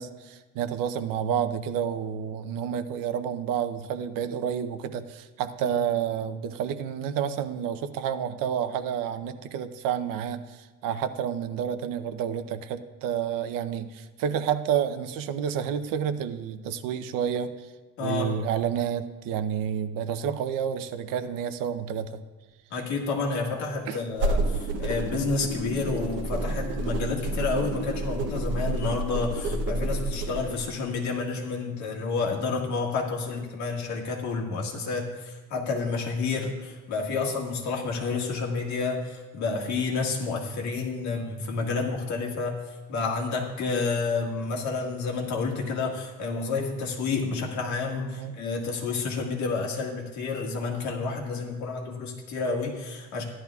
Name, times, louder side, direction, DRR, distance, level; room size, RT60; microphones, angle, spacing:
voice 1, 0.0-17.7 18.0-22.2 23.9-24.0 48.2-48.4, right 8 dB, 85° right, 11 dB, 0.7 m, -30 dB
voice 2, 18.0-18.4 22.7-42.6 42.9-53.2, left 4 dB, 60° left, 0 dB, 1.8 m, -30 dB
sound 1, 24.1-30.6, right 2 dB, 50° right, 0.9 m, -29 dB
15.0 x 11.5 x 2.4 m, 1.3 s
cardioid pair, 180°, 32 cm